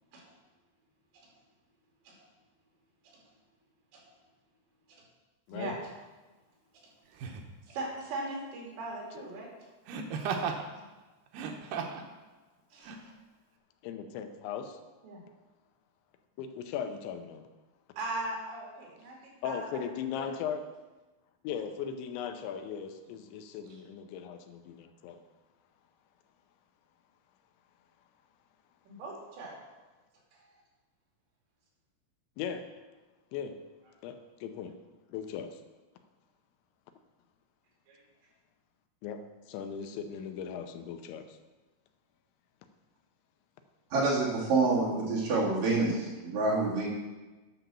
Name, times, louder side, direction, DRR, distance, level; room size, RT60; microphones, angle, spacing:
Laughter, 5.7-5.8 7.1-7.5 9.9-10.6 11.3-12.1 12.8-13.0, right 6 dB, 90° right, 1.9 m, -35 dB
voice 1, 7.7-9.5 10.7-10.9 12.7-13.1 15.0-15.2 18.0-19.2 19.4-20.3 28.9-29.6 37.9-38.0, right 2 dB, 70° right, -2 dB, 4.5 m, -39 dB
voice 2, 13.8-14.8 16.4-17.4 19.4-20.6 21.4-25.2 32.4-32.6 33.3-33.6 34.0-34.7 35.1-35.6 39.0-39.2 39.5-41.4, left 8 dB, 90° left, 7 dB, 3.1 m, -38 dB
voice 3, 43.9-46.9, right 3 dB, 55° right, -5 dB, 3.6 m, -27 dB
10.5 x 6.0 x 7.0 m, 1.2 s
omnidirectional pair, 5.3 m